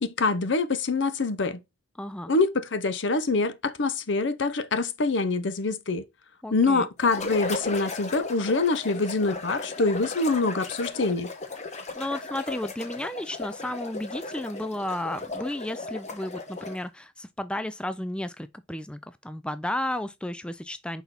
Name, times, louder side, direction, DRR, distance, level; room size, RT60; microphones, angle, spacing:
voice 1, 0.0-1.6 2.3-6.0 6.5-11.3, left 3 dB, 70° left, 0.7 m, -25 dB
voice 2, 2.0-2.3 6.4-6.9 12.0-21.0, left 1 dB, 5° left, 0.3 m, -33 dB
sound 1, 7.0-16.9, left 3 dB, 35° left, 1.1 m, -36 dB
5.9 x 4.1 x 4.1 m
head